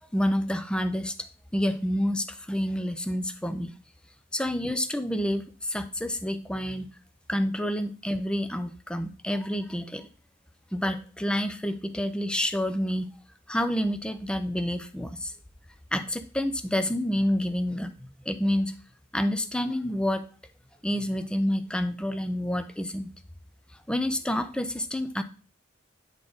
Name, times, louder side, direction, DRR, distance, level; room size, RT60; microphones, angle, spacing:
voice 1, 0.1-1.1 1.5-3.7 4.3-6.9 7.3-10.1 10.7-13.1 13.5-15.3 15.9-18.7 19.1-20.3 20.8-23.1 23.9-25.2, equal, 5° left, 9 dB, 0.5 m, -28 dB
9.8 x 3.7 x 3.9 m, 0.38 s
head